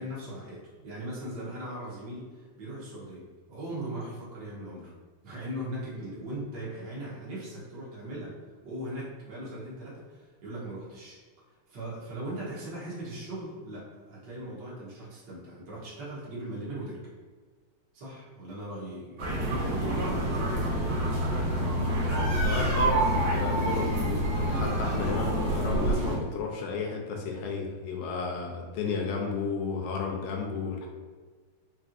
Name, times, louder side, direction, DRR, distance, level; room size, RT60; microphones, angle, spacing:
voice 1, 0.0-4.9 5.2-8.4 8.6-11.2 11.7-17.1 17.9-21.0, right 1 dB, 80° right, -7 dB, 1.0 m, -39 dB
sound 1, 19.2-26.2, right 1 dB, 60° right, 1.7 m, -27 dB
voice 2, 22.4-30.9, left 4 dB, 80° left, 1 dB, 2.0 m, -33 dB
5.2 x 2.9 x 2.5 m, 1.5 s
omnidirectional pair, 3.7 m